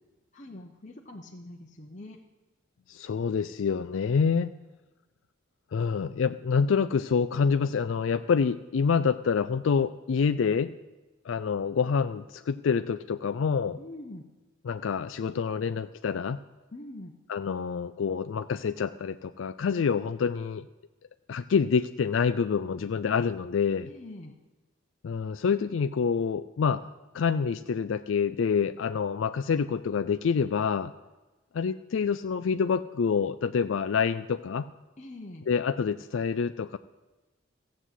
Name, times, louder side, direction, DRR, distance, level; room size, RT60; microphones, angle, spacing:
voice 1, 0.3-2.2 13.8-14.2 16.7-17.1 23.8-24.3 35.0-35.5, left 1 dB, 40° left, 0 dB, 1.0 m, -44 dB
voice 2, 2.9-4.5 5.7-10.7 11.2-13.8 14.7-16.4 17.3-20.7 21.3-23.9 25.0-26.8 27.1-30.9 31.5-34.7 35.5-36.8, left 6 dB, 90° left, 10 dB, 0.4 m, -27 dB
14.5 x 7.6 x 8.2 m, 1.1 s
head